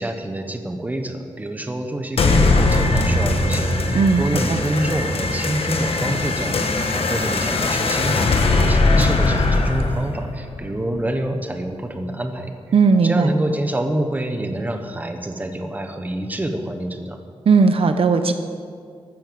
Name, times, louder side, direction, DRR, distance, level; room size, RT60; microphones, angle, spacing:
voice 1, 0.0-6.6 6.9-12.5 13.0-17.2, right 1 dB, 15° right, 5 dB, 1.2 m, -27 dB
sound 1, 2.2-11.2, left 2 dB, 70° left, 1.4 m, -20 dB
voice 2, 12.7-13.3 17.5-18.3, right 4 dB, 65° right, 8 dB, 0.9 m, -16 dB
15.0 x 12.5 x 7.0 m, 2.1 s
wide cardioid pair, 180°, 10 cm